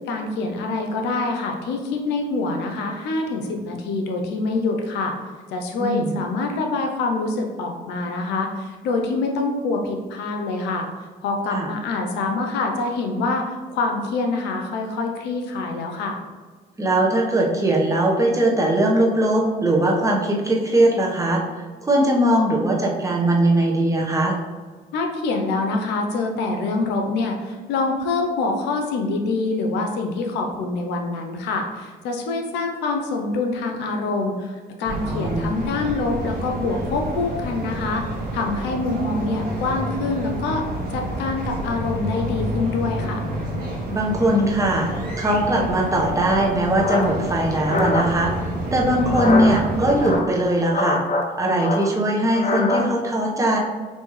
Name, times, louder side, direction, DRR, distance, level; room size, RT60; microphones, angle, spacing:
voice 1, 0.1-5.1 5.5-10.9 11.2-16.2 24.9-40.6 40.9-43.2, left 3 dB, 85° left, 3 dB, 0.6 m, -25 dB
voice 2, 5.8-6.1 11.5-11.7 16.8-21.4 21.8-24.4 35.1-35.5 43.9-48.3 48.7-51.0 51.4-53.6, right 1 dB, 20° right, -2 dB, 1.1 m, -20 dB
sound 1, 34.8-50.2, right 1 dB, 65° right, 1.2 m, -29 dB
sound 2, 46.4-48.1 49.0-49.6 49.9-51.3 51.5-52.8, left 2 dB, 45° left, 0.7 m, -24 dB
5.3 x 2.7 x 3.1 m, 1.5 s
supercardioid pair, 65°, 18 cm